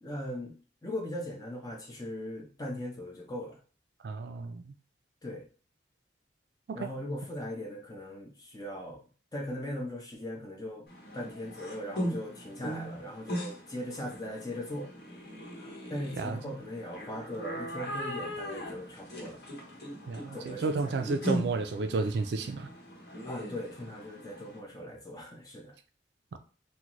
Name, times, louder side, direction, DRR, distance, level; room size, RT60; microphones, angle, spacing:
voice 1, 0.0-0.5 0.8-3.6 5.2-5.5 6.7-9.0 9.3-10.9 11.1-14.9 15.9-19.4 20.3-20.9 23.2-25.7, left 1 dB, 20° left, 0.7 m, -39 dB
voice 2, 4.0-4.6 6.7-6.9 16.2-16.4 20.1-22.7, right 3 dB, 65° right, 0.3 m, -31 dB
sound 1, 10.9-24.6, equal, 60° left, 1.0 m, -39 dB
3.8 x 2.1 x 3.0 m
head